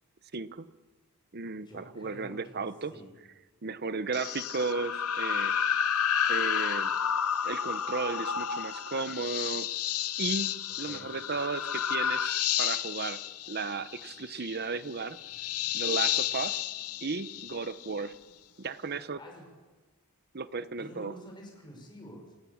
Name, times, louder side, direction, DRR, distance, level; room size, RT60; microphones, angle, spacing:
voice 1, 0.3-0.7 1.3-2.9 3.6-5.5 6.3-6.9 7.4-9.7 10.2-13.2 13.5-15.2 15.7-16.6 17.0-18.1 18.6-19.2 20.3-21.1, right 4 dB, 45° right, 13 dB, 0.9 m, -34 dB
voice 2, 1.7-2.6 2.9-3.1 10.8-11.1 19.2-19.5 20.8-22.3, equal, 20° left, 1 dB, 5.9 m, -48 dB
sound 1, 4.1-18.0, left 9 dB, 75° left, 0.9 m, -31 dB
28.5 x 16.5 x 7.3 m, 1.2 s
head